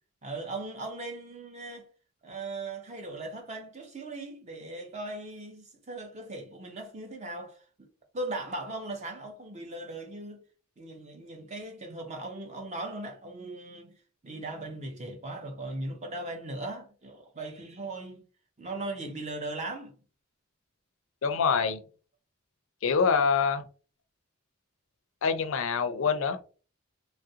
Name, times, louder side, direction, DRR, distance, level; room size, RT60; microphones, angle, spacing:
voice 1, 0.2-1.9 2.2-7.9 8.1-10.4 10.8-13.9 14.2-18.2 18.6-19.9, right 2 dB, 30° right, 0.6 m, -38 dB
voice 2, 21.2-21.8 22.8-23.6 25.2-26.4, left 5 dB, 65° left, 0.4 m, -25 dB
3.1 x 2.4 x 2.7 m
head